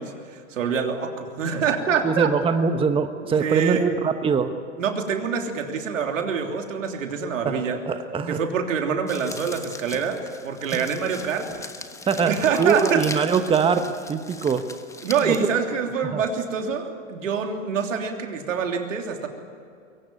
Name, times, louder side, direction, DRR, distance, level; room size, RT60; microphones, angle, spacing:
voice 1, 0.0-2.3 3.2-3.9 4.8-7.8 8.3-11.6 12.3-13.3 15.0-19.3, right 6 dB, 80° right, 4 dB, 3.3 m, -26 dB
voice 2, 2.0-4.5 7.4-8.4 10.7-10.8 12.1-13.8 14.1-14.6 15.3-15.4 16.1-16.2, right 6 dB, 15° right, 8 dB, 1.0 m, -22 dB
sound 1, 9.1-15.5, left 3 dB, 10° left, 1.2 m, -39 dB
22.5 x 18.0 x 9.1 m, 2.4 s
hypercardioid pair, 120°, 38 cm